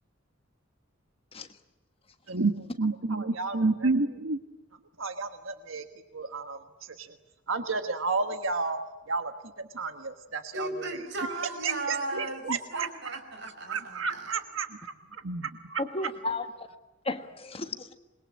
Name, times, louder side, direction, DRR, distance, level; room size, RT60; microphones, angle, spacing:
voice 1, 2.3-4.4 5.0-5.8 6.1-7.2 7.5-8.8 9.1-9.3 9.6-10.7 11.6-12.9 13.7-15.8, right 3 dB, 85° right, 1.4 m, -31 dB
voice 2, 10.5-12.4 12.7-14.3, right 2 dB, 60° right, 5.5 m, -36 dB
voice 3, 15.8-16.7 17.0-18.0, left 2 dB, 30° left, 1.4 m, -34 dB
27.0 x 22.0 x 8.7 m
head